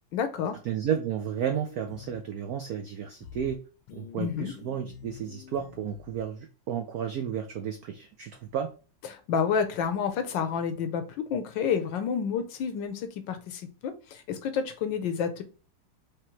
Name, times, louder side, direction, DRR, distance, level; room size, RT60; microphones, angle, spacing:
voice 1, 0.1-0.6 4.2-4.5 9.1-15.4, left 7 dB, 70° left, 9 dB, 1.2 m, -29 dB
voice 2, 0.6-3.6 3.9-8.7, right 8 dB, 85° right, 6 dB, 0.8 m, -32 dB
sound 1, 1.5-2.2 3.2-3.6 3.9-6.2, left 8 dB, 90° left, 1.7 m, -47 dB
4.9 x 3.0 x 3.0 m, 0.35 s
omnidirectional pair, 2.3 m